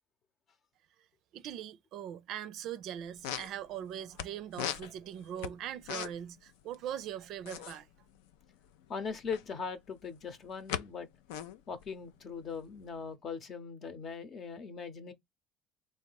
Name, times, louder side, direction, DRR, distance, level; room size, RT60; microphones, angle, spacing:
voice 1, 1.3-7.9, right 10 dB, 65° right, 0.4 m, -41 dB
sound 1, 2.8-2.9 3.1-4.3 4.5-6.4 6.6-6.8 7.0-9.5 10.1-10.8 11.1-13.0, left 10 dB, 80° left, 0.4 m, -39 dB
voice 2, 8.9-11.1 11.7-15.1, left 5 dB, 50° left, 0.9 m, -40 dB
3.6 x 2.7 x 3.9 m
hypercardioid pair, 75°, 0 cm